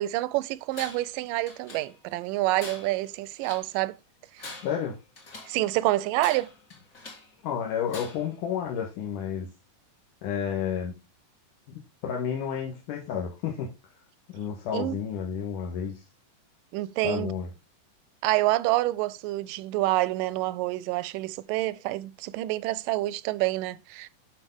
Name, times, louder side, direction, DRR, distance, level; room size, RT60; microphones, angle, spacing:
voice 1, 0.0-4.0 5.5-6.5 14.7-15.0 16.7-17.3 18.2-24.1, right 17 dB, 90° right, 2.2 m, -27 dB
Tools, 0.7-1.2 1.5-2.2 2.6-3.7 4.2-5.6 6.2-7.3 7.9-8.4, left 3 dB, 30° left, 1.5 m, -44 dB
voice 2, 4.6-5.0 7.4-9.5 10.2-10.9 12.0-13.7 14.3-16.0 17.0-17.5, left 8 dB, 80° left, 2.9 m, -31 dB
11.5 x 4.7 x 3.6 m
omnidirectional pair, 3.8 m